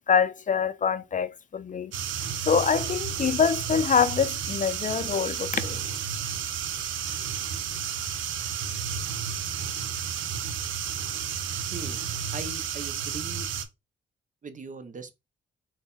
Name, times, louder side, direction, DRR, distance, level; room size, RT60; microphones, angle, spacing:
voice 1, 0.1-1.9 2.5-5.8, left 7 dB, 40° left, 0.4 m, -25 dB
sound 1, 1.9-13.7, right 8 dB, 80° right, 0.5 m, -32 dB
voice 2, 12.3-13.5 14.4-15.1, right 4 dB, 40° right, 0.7 m, -39 dB
3.9 x 2.2 x 3.8 m
supercardioid pair, 50°, 20 cm